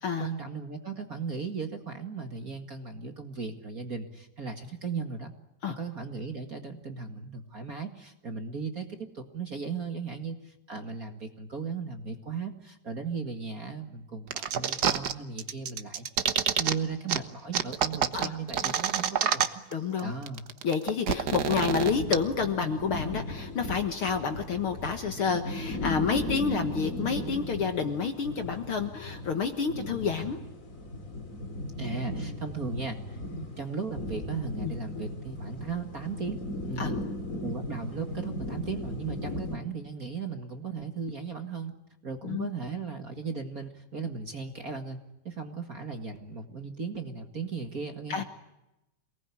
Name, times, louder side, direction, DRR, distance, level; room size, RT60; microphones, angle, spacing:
voice 1, 0.2-5.3 5.7-16.1 16.4-19.6 20.0-20.5 31.8-33.2 33.5-36.4 36.6-37.0 37.4-41.7 42.0-45.0 45.2-48.2, right 5 dB, 30° right, 6 dB, 2.1 m, -36 dB
sound 1, 14.3-15.1 15.4-16.7 17.1-17.2 17.5-19.7 20.0-20.1 20.3-22.1, right 8 dB, 65° right, 1.0 m, -27 dB
voice 2, 19.7-20.1 20.6-30.4 34.6-34.7 36.8-36.9 42.2-42.5 48.1-48.2, left 5 dB, 55° left, 8 dB, 1.9 m, -29 dB
sound 2, 21.8-39.6, left 1 dB, 30° left, 2.7 m, -37 dB
27.5 x 19.5 x 9.9 m, 0.93 s
omnidirectional pair, 3.4 m